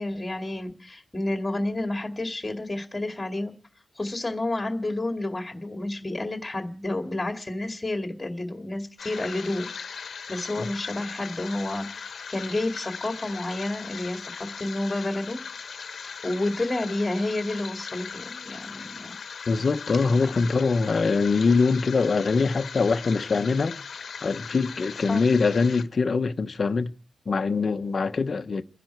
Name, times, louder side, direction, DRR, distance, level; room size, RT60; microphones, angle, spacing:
voice 1, 0.0-3.5 3.9-15.4 15.8-15.9 16.2-19.1 25.1-25.2, left 2 dB, 15° left, 2.3 m, -30 dB
sound 1, 9.0-25.8, left 6 dB, 60° left, 1.3 m, -39 dB
voice 2, 19.5-23.8 24.2-26.9 27.3-28.6, left 4 dB, 40° left, 1.1 m, -23 dB
29.5 x 10.5 x 4.6 m
wide cardioid pair, 140°, 0 cm